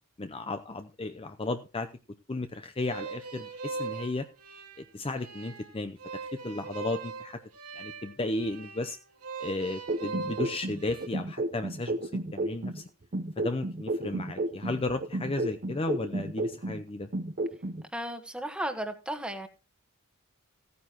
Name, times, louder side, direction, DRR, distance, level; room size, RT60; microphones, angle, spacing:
voice 1, 0.2-1.9 2.3-4.3 4.8-7.4 7.7-9.0 9.4-12.8 13.4-17.1, left 2 dB, 25° left, 0.6 m, -34 dB
sound 1, 2.8-11.1, right 4 dB, 85° right, 2.6 m, -40 dB
sound 2, 9.9-12.8 13.1-16.8 17.1-17.8, right 2 dB, 40° right, 0.7 m, -32 dB
voice 2, 17.9-19.5, right 1 dB, 5° right, 1.2 m, -34 dB
15.0 x 9.4 x 2.9 m
head